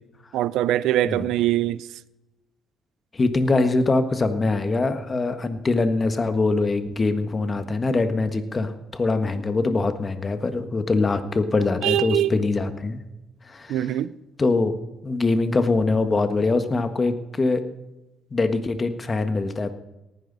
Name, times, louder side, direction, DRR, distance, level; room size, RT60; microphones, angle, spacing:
voice 1, 0.3-1.9 11.8-12.3 13.7-14.1, right 13 dB, 90° right, 0.4 m, -22 dB
voice 2, 3.1-13.0 13.5-13.9 14.4-14.7 15.0-17.6 18.3-19.7, left 3 dB, 30° left, 1.4 m, -23 dB
18.5 x 11.0 x 4.0 m
cardioid pair, 90°, 0 cm